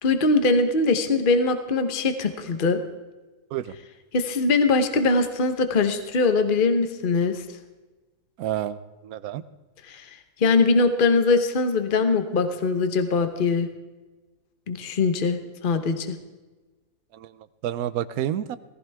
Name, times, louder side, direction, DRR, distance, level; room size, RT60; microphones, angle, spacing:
voice 1, 0.0-2.8 4.1-7.4 9.9-10.1 10.4-13.7 14.7-16.2, left 3 dB, 35° left, 8 dB, 1.1 m, -22 dB
voice 2, 8.4-9.4 17.1-17.3 17.6-18.6, right 11 dB, 75° right, 15 dB, 1.1 m, -29 dB
18.0 x 15.5 x 3.5 m, 1.2 s
omnidirectional pair, 1.7 m